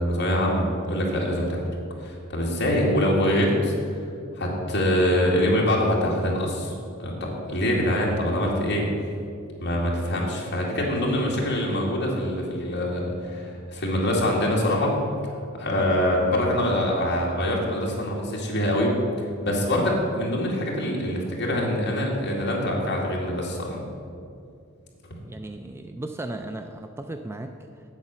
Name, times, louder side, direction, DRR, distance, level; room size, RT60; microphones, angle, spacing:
voice 1, 0.0-1.6 2.0-3.7 4.4-6.7 7.0-8.9 9.6-14.9 15.5-19.0 19.4-23.8, left 1 dB, 55° left, -3 dB, 2.1 m, -24 dB
voice 2, 25.2-27.8, right 2 dB, 10° right, 6 dB, 0.3 m, -36 dB
8.2 x 7.8 x 6.1 m, 2.4 s
head